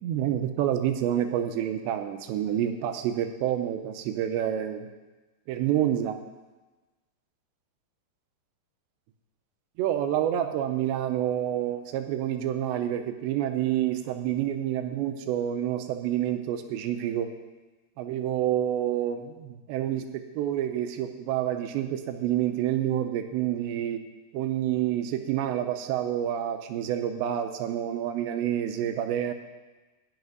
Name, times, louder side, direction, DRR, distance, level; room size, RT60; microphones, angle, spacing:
voice 1, 0.0-4.9 5.5-6.2 9.8-17.3 18.0-24.0 24.3-29.3, right 11 dB, 85° right, 7 dB, 2.8 m, -28 dB
10.5 x 7.2 x 9.4 m, 1.2 s
omnidirectional pair, 5.4 m